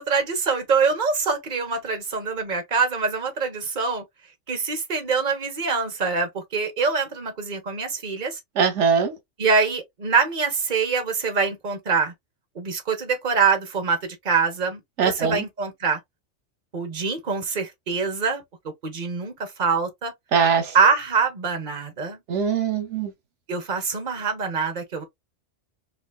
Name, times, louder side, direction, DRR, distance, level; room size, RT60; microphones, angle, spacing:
voice 1, 0.0-4.0 4.5-8.4 9.4-12.1 12.5-16.0 16.7-18.4 18.8-20.1 20.7-22.2 23.5-25.0, right 5 dB, 40° right, 1.2 m, -24 dB
voice 2, 8.6-9.2 15.0-15.4 20.3-20.8 22.3-23.1, right 6 dB, 75° right, 1.1 m, -21 dB
4.0 x 3.1 x 2.3 m
omnidirectional pair, 1.2 m